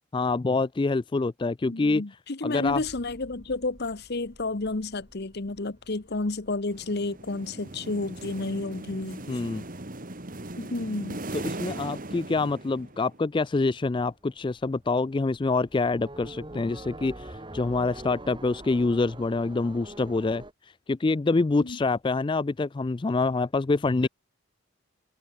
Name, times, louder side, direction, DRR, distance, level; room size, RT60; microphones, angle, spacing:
voice 1, 0.1-2.0 2.4-2.8 9.3-9.6 11.4-24.1, left 3 dB, 25° left, 0.3 m, -26 dB
voice 2, 1.6-9.2 10.6-11.2 21.6-21.8 24.0-24.1, left 2 dB, 50° left, 1.0 m, -31 dB
sound 1, 2.7-11.5 11.9-12.6 12.9-13.0 13.4-20.5, right 1 dB, 20° right, 2.2 m, -47 dB
sound 2, 6.7-13.2, right 2 dB, 40° right, 2.0 m, -39 dB
head